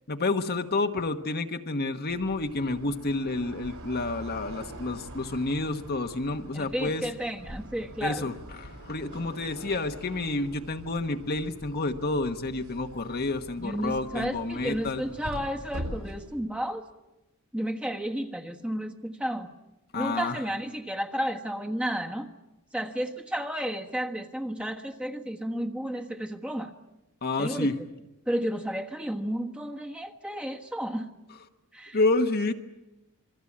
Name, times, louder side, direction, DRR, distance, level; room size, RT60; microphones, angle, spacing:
voice 1, 0.1-7.1 8.0-15.0 19.9-20.4 27.2-27.8 31.9-32.5, left 2 dB, 45° left, 6 dB, 1.2 m, -29 dB
sound 1, 2.1-16.4, equal, 70° right, 7.5 m, -43 dB
voice 2, 6.5-8.3 13.6-16.8 17.5-19.5 19.9-22.3 22.7-26.7 27.4-27.7 28.3-31.1 31.7-32.0, equal, 5° right, 3 dB, 1.4 m, -32 dB
27.5 x 22.0 x 8.6 m, 0.99 s
head